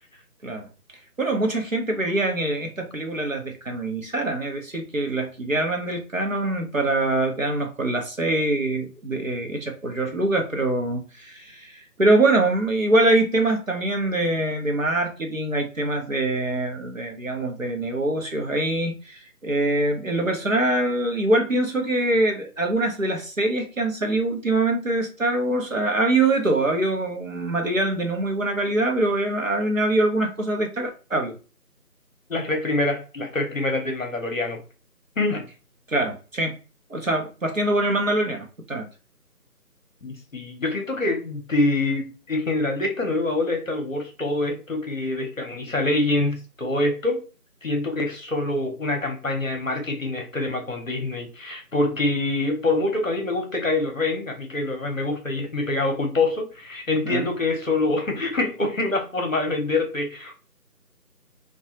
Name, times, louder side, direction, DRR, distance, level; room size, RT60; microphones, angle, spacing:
voice 1, 1.2-31.3 35.9-36.6 36.9-38.9 57.1-57.3, right 2 dB, 55° right, 0.7 m, -24 dB
voice 2, 32.3-34.6 35.2-35.4 40.0-47.2 47.6-60.3, left 2 dB, 55° left, 0.8 m, -25 dB
2.8 x 2.2 x 2.8 m
figure-of-eight pair, 180°, 48 cm